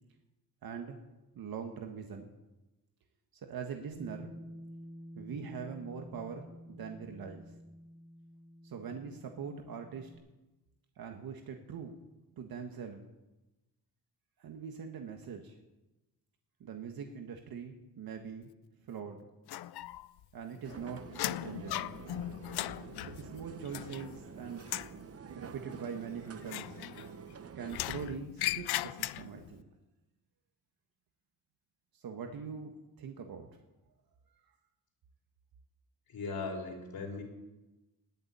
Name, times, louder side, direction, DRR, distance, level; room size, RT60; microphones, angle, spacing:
voice 1, 0.6-1.0 1.3-2.3 3.5-4.3 5.1-7.5 8.6-10.1 11.0-11.9 12.4-13.1 14.4-15.6 16.6-18.5 18.9-19.2 20.3-21.9 23.0-24.7 25.3-26.8 27.5-29.7 31.9-33.5 34.3-34.4, right 6 dB, 70° right, 4 dB, 1.7 m, -42 dB
Bass guitar, 3.9-10.2, equal, 85° right, 3.1 m, -50 dB
sound 1, 19.5-20.2 20.5-24.3 24.6-25.0 26.4-27.3 27.7-29.5, left 14 dB, 90° left, 0.6 m, -38 dB
sound 2, 20.6-27.8, right 6 dB, 40° right, 1.0 m, -49 dB
voice 2, 36.1-37.2, left 3 dB, 70° left, 0 dB, 4.5 m, -38 dB
20.5 x 7.1 x 9.4 m, 1.0 s
cardioid pair, 135°, 37 cm